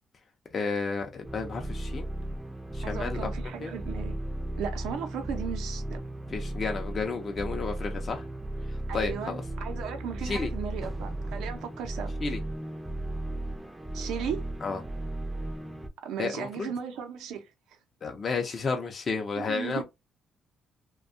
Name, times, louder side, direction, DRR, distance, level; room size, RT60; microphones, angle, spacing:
voice 1, 0.5-2.1 2.7-3.3 3.6-3.7 6.3-8.3 8.9-9.4 10.3-10.5 12.2-12.4 14.6-14.8 16.2-16.7 18.0-19.8, left 4 dB, 45° left, 0.5 m, -32 dB
sound 1, 1.2-15.9, right 1 dB, 10° right, 0.5 m, -35 dB
voice 2, 2.8-4.1 4.6-6.0 8.9-12.1 13.9-14.4 16.0-17.4 19.4-19.8, right 7 dB, 90° right, 0.6 m, -36 dB
2.5 x 2.2 x 2.5 m
cardioid pair, 90°, 0 cm